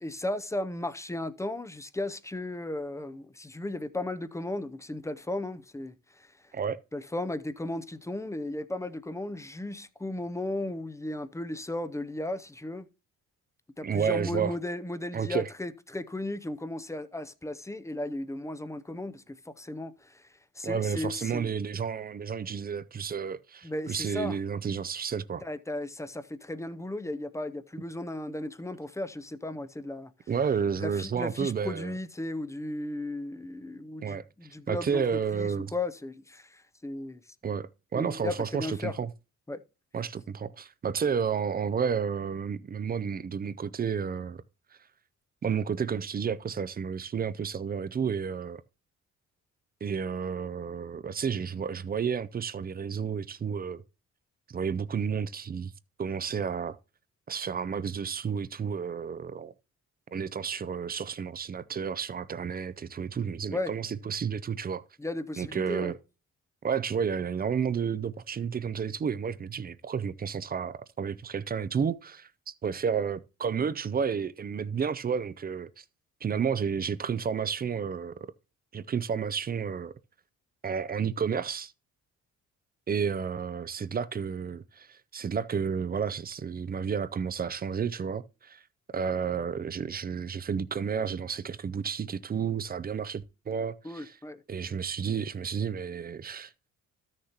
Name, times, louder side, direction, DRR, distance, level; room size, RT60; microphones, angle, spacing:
voice 1, 0.0-6.3 6.9-12.8 13.8-20.3 20.6-21.5 23.6-24.4 25.4-30.1 30.8-35.0 35.3-37.2 37.9-38.9 39.5-39.6 63.5-63.7 65.0-65.9 93.8-94.4, left 2 dB, 10° left, 0.6 m, -35 dB
voice 2, 13.8-14.5 15.1-15.5 20.6-25.4 30.3-31.9 34.0-34.2 34.7-35.7 37.4-39.1 39.9-44.4 45.4-48.6 49.8-53.8 54.5-55.7 56.0-56.8 57.3-59.5 60.1-64.8 65.4-66.0 66.6-75.8 76.2-78.2 78.7-79.9 80.6-81.7 82.9-88.6 88.9-94.1 94.5-96.5, right 6 dB, 30° right, 0.5 m, -31 dB
13.0 x 6.6 x 2.9 m
cardioid pair, 90°, 30 cm